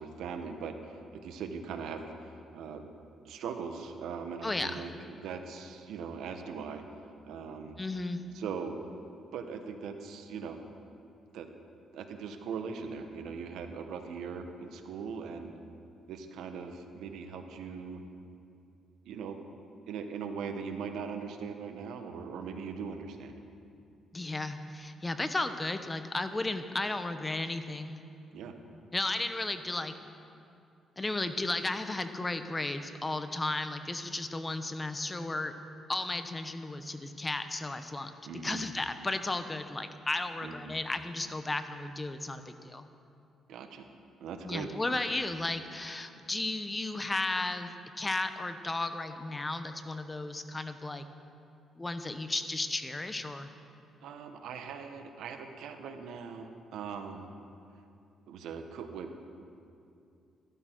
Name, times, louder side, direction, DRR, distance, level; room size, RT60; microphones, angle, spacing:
voice 1, 0.0-2.8 3.2-6.8 7.2-7.8 8.3-8.9 9.3-10.6 11.3-11.5 11.9-15.6 16.1-18.0 19.0-19.4 19.9-23.4 28.3-28.5 38.2-38.7 40.4-40.8 43.5-43.9 44.2-45.0 54.0-57.3 58.3-59.2, right 6 dB, 80° right, 6 dB, 1.1 m, -40 dB
voice 2, 4.4-4.8 7.8-8.2 24.1-28.0 28.9-29.9 31.0-35.5 35.9-38.1 38.4-42.9 44.4-51.1 51.8-53.5, left 2 dB, 20° left, 9 dB, 0.8 m, -34 dB
14.0 x 12.5 x 4.6 m, 2.6 s
cardioid pair, 90°, 0 cm